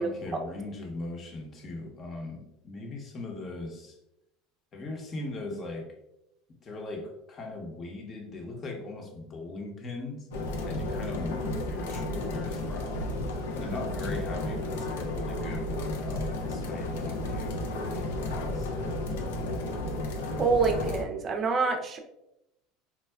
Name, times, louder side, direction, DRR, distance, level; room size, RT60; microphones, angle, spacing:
voice 1, 0.0-4.0 4.7-5.9 6.6-10.3 10.6-13.1 13.5-18.7, left 2 dB, 35° left, 2 dB, 0.8 m, -40 dB
sound 1, 10.3-21.0, left 1 dB, 85° left, 0.4 m, -32 dB
voice 2, 20.4-22.0, right 4 dB, 35° right, 5 dB, 0.5 m, -26 dB
4.4 x 2.2 x 2.2 m, 0.87 s
supercardioid pair, 100°, 0 cm